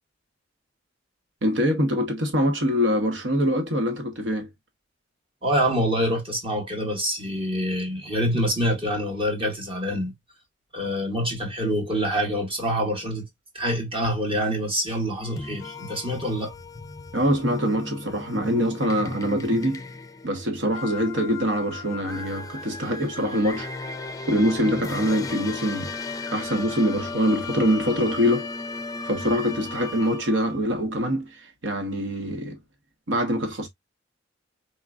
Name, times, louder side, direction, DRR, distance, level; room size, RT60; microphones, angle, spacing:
voice 1, 1.4-4.5 17.1-19.8 20.2-23.7 24.3-26.0 26.3-28.5 29.0-32.6 33.1-33.7, equal, 85° right, 1.1 m, -24 dB
voice 2, 5.4-10.1 10.7-13.2 13.5-16.5, equal, 30° right, 2.1 m, -26 dB
sound 1, 15.2-30.6, left 3 dB, 20° left, 0.5 m, -35 dB
4.8 x 3.6 x 2.4 m
head